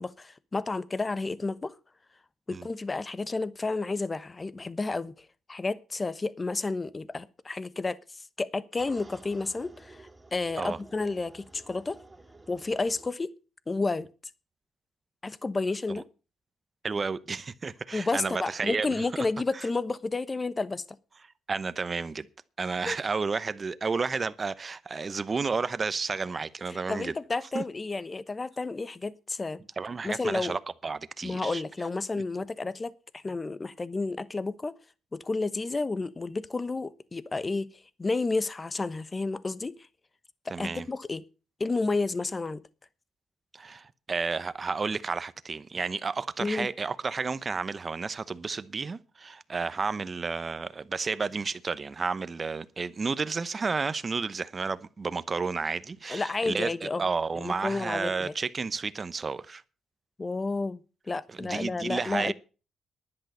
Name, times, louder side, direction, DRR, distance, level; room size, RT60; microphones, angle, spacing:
voice 1, 0.0-1.7 2.5-12.0 12.5-13.3 13.7-14.1 15.2-16.1 17.9-20.8 22.9-23.0 26.7-29.6 30.0-30.6 31.2-34.7 35.1-37.7 38.0-39.8 40.6-41.2 41.6-42.6 46.4-46.7 56.1-57.0 57.4-58.3 60.2-60.8 61.1-62.3, left 3 dB, 25° left, 1.0 m, -31 dB
sound 1, 8.8-13.1, right 2 dB, 20° right, 3.2 m, -52 dB
voice 2, 16.8-19.0 19.5-19.7 21.5-22.3 22.6-27.1 27.5-27.6 29.8-31.6 40.5-40.9 43.5-59.6 61.3-62.3, right 4 dB, 35° right, 0.9 m, -31 dB
11.0 x 10.5 x 6.6 m
cardioid pair, 95°, 0 cm